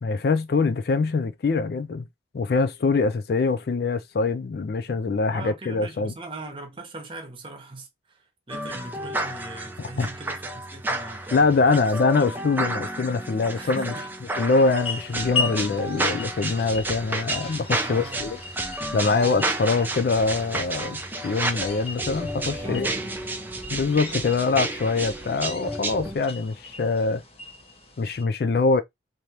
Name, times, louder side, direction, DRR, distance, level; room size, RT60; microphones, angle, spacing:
voice 1, 0.0-2.0 2.3-6.1 9.8-10.1 11.3-13.9 14.4-18.4 18.9-21.0 21.2-22.9 23.7-27.2 28.0-28.8, left 4 dB, 55° left, 0.4 m, -24 dB
voice 2, 5.3-11.8 12.2-12.4 13.6-14.1 17.8-18.3 22.6-23.5, right 2 dB, 30° right, 1.0 m, -40 dB
sound 1, 8.5-26.2, right 2 dB, 10° right, 0.4 m, -31 dB
sound 2, 14.5-28.2, left 3 dB, 30° left, 0.8 m, -37 dB
3.3 x 2.7 x 2.8 m
head